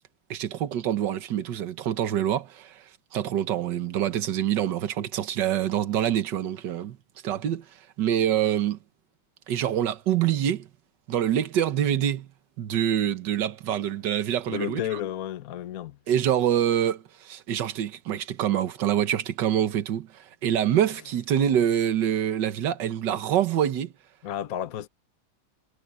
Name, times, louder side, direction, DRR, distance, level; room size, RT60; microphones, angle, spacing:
voice 1, 0.3-2.9 3.1-7.0 7.2-8.8 9.5-10.7 11.1-12.3 12.6-14.8 16.1-23.9, right 10 dB, 60° right, 1.8 m, -26 dB
voice 2, 14.5-16.0 24.2-24.9, left 11 dB, 50° left, 1.3 m, -32 dB
omnidirectional pair, 2.2 m